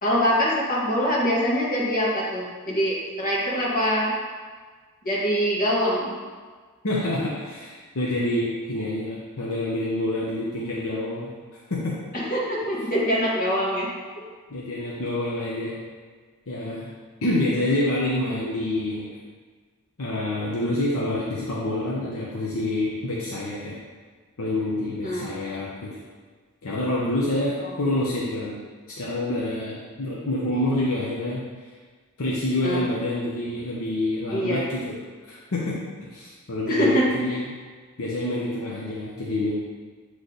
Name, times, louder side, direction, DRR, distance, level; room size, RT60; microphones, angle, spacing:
voice 1, 0.0-4.1 5.0-6.1 12.1-13.9 25.0-25.2 27.6-27.7 32.6-32.8 34.3-34.6 36.7-37.4, equal, 40° left, -6 dB, 1.6 m, -24 dB
voice 2, 6.8-11.3 11.7-11.9 14.5-15.8 16.5-16.9 17.2-19.1 20.0-23.7 24.4-25.9 26.6-28.6 29.0-31.4 32.2-34.9 35.3-35.8 36.1-37.5 38.0-39.5, left 1 dB, 65° left, -6 dB, 0.8 m, -27 dB
8.1 x 3.2 x 3.9 m, 1.5 s
head